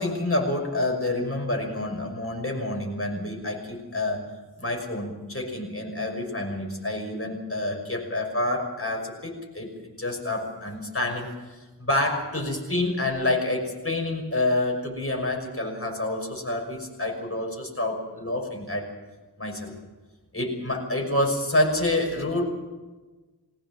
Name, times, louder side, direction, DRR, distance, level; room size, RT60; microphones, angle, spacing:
voice 1, 0.0-4.3 4.6-11.3 11.8-18.9 19.4-19.7 20.3-22.5, left 2 dB, 30° left, 1 dB, 6.0 m, -28 dB
21.0 x 18.0 x 7.4 m, 1.2 s
wide cardioid pair, 55°, 42 cm